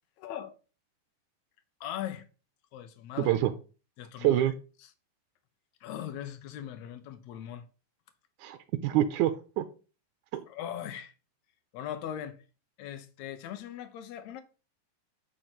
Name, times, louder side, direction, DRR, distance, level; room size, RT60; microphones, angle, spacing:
voice 1, 0.2-0.5 1.8-2.3 2.7-3.4 4.0-4.5 4.8-4.9 5.8-7.6 10.5-11.1 11.7-12.4 12.8-14.4, left 10 dB, 70° left, 2.1 m, -39 dB
voice 2, 3.2-3.5 4.2-4.5 8.4-9.7 10.3-10.4, right 13 dB, 80° right, 2.1 m, -26 dB
9.0 x 3.9 x 5.9 m
omnidirectional pair, 3.6 m